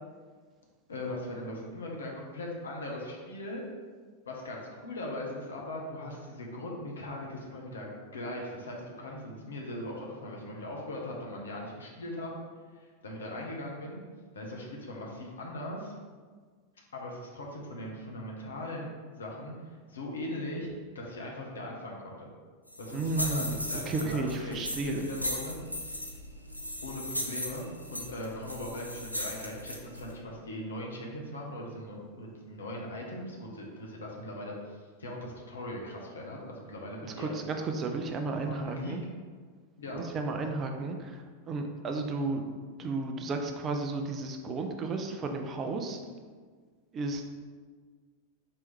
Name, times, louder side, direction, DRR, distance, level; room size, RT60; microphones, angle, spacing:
voice 1, 0.9-3.6 4.3-12.3 12.7-14.0 14.3-15.9 16.9-22.3 22.8-25.6 26.8-37.3 38.5-39.0 39.8-40.1, left 1 dB, 70° left, -1 dB, 0.9 m, -39 dB
sound 1, 22.7-30.1, equal, 90° left, 0.5 m, -37 dB
voice 2, 22.9-25.1 37.2-39.0 39.9-42.4 42.8-46.0 46.9-47.2, right 3 dB, 25° right, 4 dB, 0.4 m, -33 dB
4.3 x 3.0 x 3.4 m, 1.5 s
figure-of-eight pair, 90°, 0 cm